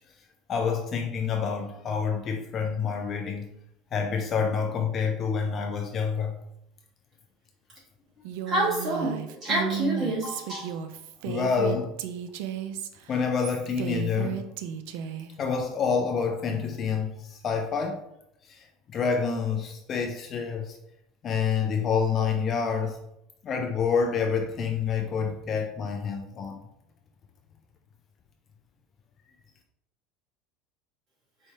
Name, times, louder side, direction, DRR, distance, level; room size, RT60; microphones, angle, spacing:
voice 1, 0.5-3.5 3.9-6.4 11.2-12.0 13.1-14.5 15.4-18.0 18.4-18.6 18.9-20.8 21.2-23.0 23.4-26.6, left 6 dB, 25° left, 0.3 m, -27 dB
Female speech woman speaking, 8.2-15.3, right 8 dB, 65° right, 0.3 m, -34 dB
voice 2, 8.5-10.7, right 1 dB, 30° right, 1.5 m, -28 dB
4.5 x 3.1 x 2.7 m
cardioid pair, 170°, 0 cm